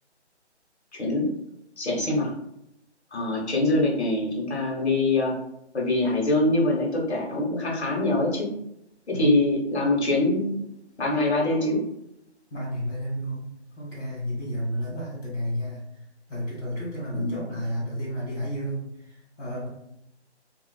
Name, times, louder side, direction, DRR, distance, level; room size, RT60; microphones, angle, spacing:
voice 1, 0.9-1.3 1.8-2.3 3.1-5.3 5.7-8.5 9.1-10.6 11.0-11.8 17.1-17.4, left 2 dB, 65° left, -3 dB, 0.9 m, -24 dB
voice 2, 9.1-9.4 12.5-13.5 13.8-15.8 16.3-19.7, equal, 5° left, -24 dB, 1.0 m, -31 dB
2.5 x 2.3 x 2.3 m, 0.80 s
hypercardioid pair, 180°, 35 cm